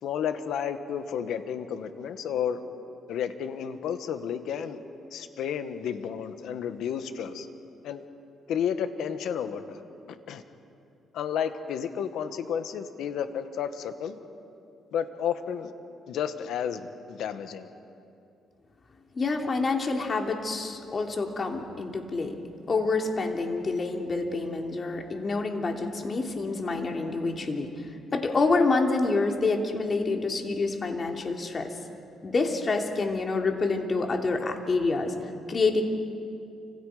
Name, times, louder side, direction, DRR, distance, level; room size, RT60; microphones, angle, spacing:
voice 1, 0.0-2.6 3.1-4.8 5.1-7.5 7.8-8.0 8.5-9.8 10.3-10.4 11.1-14.2 14.9-15.7 16.1-17.7, left 8 dB, 80° left, 9 dB, 1.6 m, -31 dB
voice 2, 19.1-22.4 22.7-31.7 32.2-35.1 35.5-35.8, left 3 dB, 40° left, 2 dB, 3.1 m, -27 dB
29.5 x 26.0 x 5.1 m, 2.6 s
cardioid pair, 90°, 0 cm